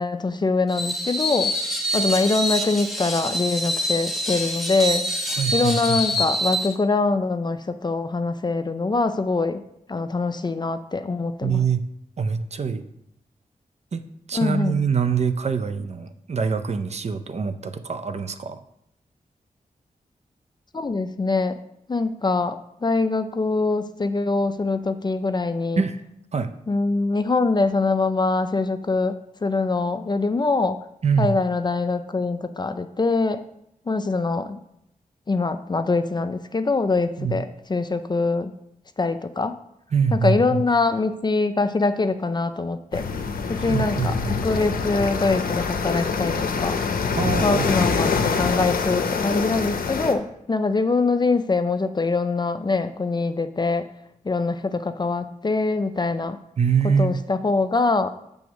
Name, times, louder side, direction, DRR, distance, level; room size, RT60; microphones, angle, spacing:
voice 1, 0.0-1.5 1.9-5.0 5.5-9.6 9.9-11.6 14.3-14.8 20.7-21.6 21.9-25.8 26.7-30.8 31.2-33.4 33.9-34.6 35.3-38.5 39.0-39.6 40.2-43.0 43.5-44.1 44.4-46.8 47.4-53.9 54.3-56.4 57.0-58.1, left 3 dB, 30° left, 10 dB, 0.4 m, -23 dB
Screech, 0.7-6.7, equal, ahead, 0.9 m, -26 dB
voice 2, 5.4-6.2 11.4-11.9 12.2-12.9 13.9-18.6 25.8-26.0 26.3-26.5 31.0-31.4 37.2-37.4 39.9-40.6 43.6-44.4 47.1-47.7 56.6-57.2, right 6 dB, 50° right, 10 dB, 0.5 m, -24 dB
sound 1, 42.9-50.1, left 5 dB, 85° left, 0.6 m, -25 dB
6.2 x 3.5 x 6.0 m, 0.77 s
cardioid pair, 70°, 15 cm